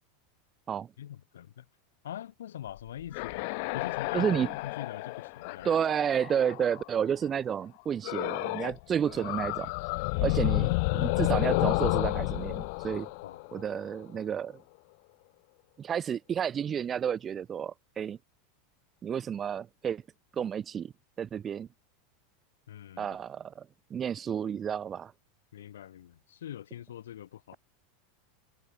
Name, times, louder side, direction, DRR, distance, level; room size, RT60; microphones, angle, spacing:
voice 1, 1.0-1.6 2.0-3.4 3.7-5.7 13.2-13.4 22.7-23.2 25.5-27.6, left 11 dB, 85° left, 4.7 m, -43 dB
sound 1, 2.8-6.9 8.0-8.8 9.1-14.0, left 29 dB, 65° left, 0.3 m, -31 dB
voice 2, 4.1-4.5 5.6-9.7 10.2-13.1 13.5-14.6 15.8-18.2 19.0-20.0 20.3-20.9 21.2-21.7 23.0-23.6 23.9-25.1, right 8 dB, 30° right, 1.5 m, -31 dB
hypercardioid pair, 100°, 0 cm